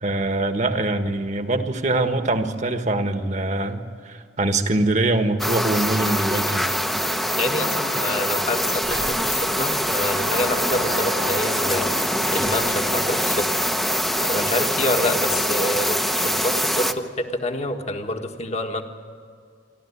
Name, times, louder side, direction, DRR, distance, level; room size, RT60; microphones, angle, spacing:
voice 1, 0.0-6.7, right 2 dB, 40° right, 7 dB, 1.6 m, -23 dB
sound 1, 5.4-16.9, equal, ahead, 0.9 m, -24 dB
voice 2, 7.0-11.9 12.3-13.5 14.2-16.0 16.2-18.8, left 1 dB, 40° left, 5 dB, 1.6 m, -27 dB
Sliding door, 8.0-8.1 8.5-13.5, right 1 dB, 85° right, 4.5 m, -36 dB
28.0 x 12.5 x 9.9 m, 2.2 s
head